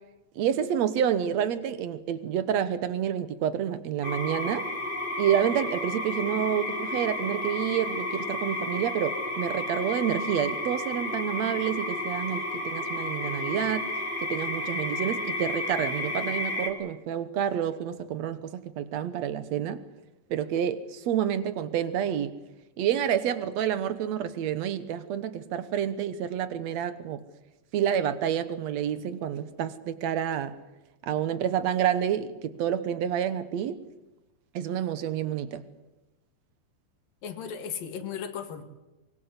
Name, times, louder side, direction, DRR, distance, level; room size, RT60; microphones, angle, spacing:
voice 1, 0.4-4.7 5.2-13.9 14.2-19.8 20.3-22.3 22.8-27.2 27.7-30.6 31.0-33.8 34.5-35.6, right 9 dB, 65° right, 13 dB, 2.0 m, -28 dB
sound 1, 4.0-16.7, left 1 dB, 15° left, 3.1 m, -32 dB
voice 2, 37.2-38.6, left 7 dB, 80° left, 8 dB, 3.5 m, -36 dB
24.0 x 22.0 x 8.1 m, 1.0 s
omnidirectional pair, 4.0 m